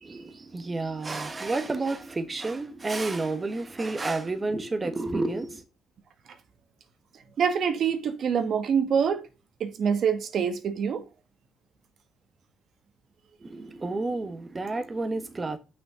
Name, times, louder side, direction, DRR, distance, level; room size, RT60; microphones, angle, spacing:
voice 1, 0.0-5.6 13.4-15.6, right 3 dB, 25° right, 1.3 m, -30 dB
voice 2, 7.4-9.2 9.6-11.0, right 7 dB, 65° right, 1.4 m, -25 dB
6.5 x 5.9 x 5.6 m
cardioid pair, 90°, 0 cm